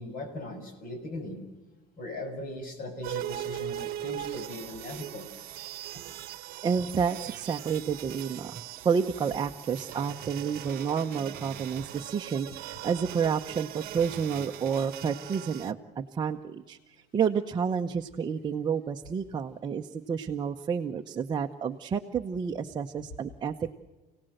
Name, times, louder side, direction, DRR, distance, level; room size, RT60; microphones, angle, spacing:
voice 1, 0.0-1.4 2.0-5.3 5.9-6.0, left 1 dB, 45° left, 6 dB, 6.2 m, -39 dB
sound 1, 3.0-15.7, right 13 dB, 50° right, 1.1 m, -40 dB
voice 2, 6.6-23.7, right 6 dB, 20° right, 3 dB, 0.9 m, -30 dB
29.5 x 18.0 x 7.9 m, 1.2 s
cardioid pair, 160°, 20 cm